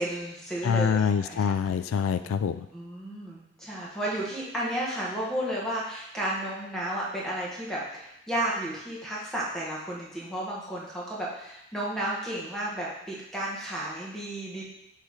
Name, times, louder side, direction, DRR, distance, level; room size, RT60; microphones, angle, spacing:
voice 1, 0.0-1.5 2.7-14.6, right 1 dB, ahead, -6 dB, 1.4 m, -33 dB
voice 2, 0.6-2.7, left 6 dB, 85° left, 11 dB, 0.3 m, -25 dB
6.5 x 3.3 x 4.8 m, 0.82 s
head